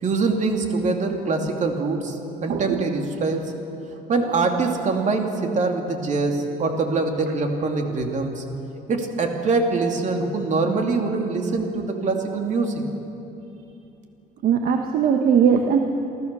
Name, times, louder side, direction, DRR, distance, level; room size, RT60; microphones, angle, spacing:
voice 1, 0.0-3.5 4.1-8.4 8.9-12.8, right 3 dB, 45° right, 3 dB, 2.8 m, -24 dB
voice 2, 2.5-2.8 14.4-15.8, right 7 dB, 60° right, 4 dB, 1.3 m, -19 dB
28.5 x 14.0 x 6.9 m, 2.8 s
cardioid pair, 110°, 17 cm